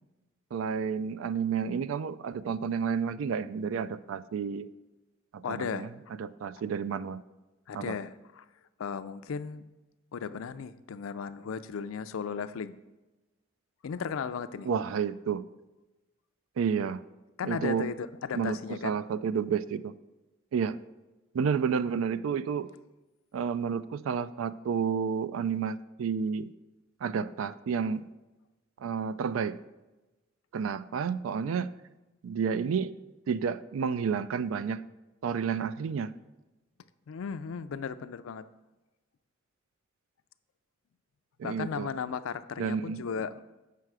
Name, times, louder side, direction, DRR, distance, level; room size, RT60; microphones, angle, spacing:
voice 1, 0.5-4.7 5.3-5.9 6.2-7.2 7.7-7.9 14.7-15.4 16.6-17.0 17.4-17.9 18.3-19.9 20.5-20.8 21.3-22.7 23.3-26.5 27.0-28.1 28.8-29.6 30.5-31.8 32.2-32.9 33.3-34.9 35.2-36.2 41.4-41.9 42.6-43.0, right 6 dB, 70° right, 16 dB, 0.3 m, -30 dB
voice 2, 5.4-5.9 7.7-8.5 8.8-9.7 10.1-12.7 13.8-14.7 17.4-19.0 37.1-38.5 41.4-43.4, left 6 dB, 75° left, 13 dB, 0.4 m, -35 dB
7.6 x 5.7 x 4.7 m, 1.1 s
head